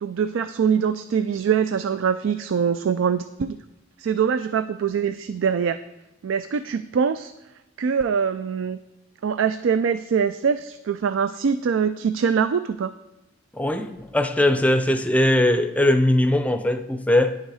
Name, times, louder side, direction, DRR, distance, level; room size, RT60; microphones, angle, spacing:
voice 1, 0.0-3.6 4.0-5.8 6.2-7.3 7.8-8.8 9.2-12.9, right 6 dB, 80° right, 12 dB, 0.4 m, -23 dB
voice 2, 13.5-17.4, left 1 dB, 5° left, 8 dB, 0.5 m, -20 dB
10.0 x 6.5 x 4.8 m, 0.96 s
head